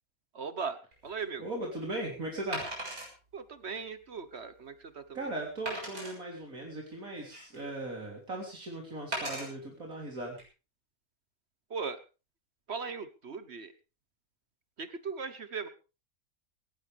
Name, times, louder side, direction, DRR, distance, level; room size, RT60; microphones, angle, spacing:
voice 1, 0.3-0.8 1.0-1.4 3.3-5.3 11.7-12.0 12.7-13.7 14.8-15.7, right 5 dB, 50° right, 12 dB, 1.3 m, -38 dB
Wood, 0.9-1.1 2.5-3.1 3.7-3.8 4.4-4.5 5.7-6.1 6.9-7.7 9.1-9.5 10.2-10.4, right 1 dB, 90° right, 7.1 m, -37 dB
voice 2, 1.4-2.6 5.1-10.4, right 1 dB, 70° right, -1 dB, 3.8 m, -38 dB
18.0 x 17.0 x 3.5 m, 0.33 s
omnidirectional pair, 1.5 m